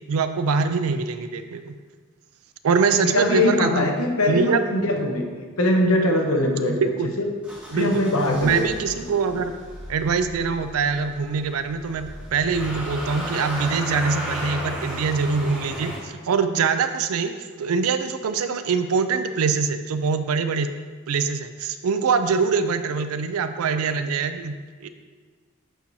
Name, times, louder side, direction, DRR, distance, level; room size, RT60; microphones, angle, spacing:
voice 1, 0.1-1.7 2.6-3.9 4.3-4.7 6.8-7.1 7.7-8.0 8.4-9.5 9.9-17.3 17.6-20.7 21.1-24.9, right 5 dB, 85° right, 9 dB, 0.4 m, -23 dB
voice 2, 2.9-6.8 7.2-7.3 7.7-8.7 9.0-9.1, left 1 dB, 80° left, 1 dB, 0.9 m, -22 dB
Motor vehicle (road) / Engine starting, 7.4-16.0, equal, 5° right, 1.3 m, -35 dB
7.9 x 4.7 x 2.7 m, 1.5 s
head